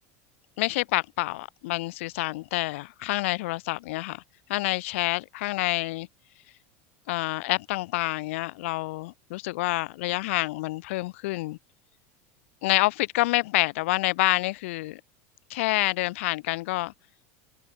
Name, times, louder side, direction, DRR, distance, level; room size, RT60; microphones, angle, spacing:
voice 1, 0.6-4.2 4.5-6.1 7.1-11.6 12.6-15.0 15.5-16.9, left 20 dB, 70° left, 1.6 m, -27 dB
supercardioid pair, 170°, 7 cm